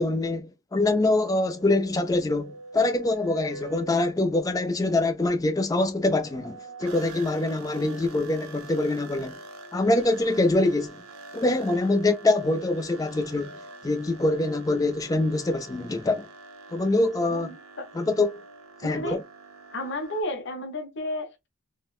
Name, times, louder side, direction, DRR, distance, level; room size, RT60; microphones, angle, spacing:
voice 1, 0.0-9.4 9.7-11.0 11.3-13.5 13.8-16.3 16.7-17.5 17.9-18.4 18.8-19.2, left 2 dB, 15° left, 0.3 m, -24 dB
sound 1, 1.1-4.4 6.0-20.2, right 2 dB, 90° right, 0.7 m, -45 dB
voice 2, 17.3-17.9 18.8-19.2 19.7-21.5, left 1 dB, 55° left, 0.7 m, -32 dB
3.7 x 2.0 x 2.3 m
head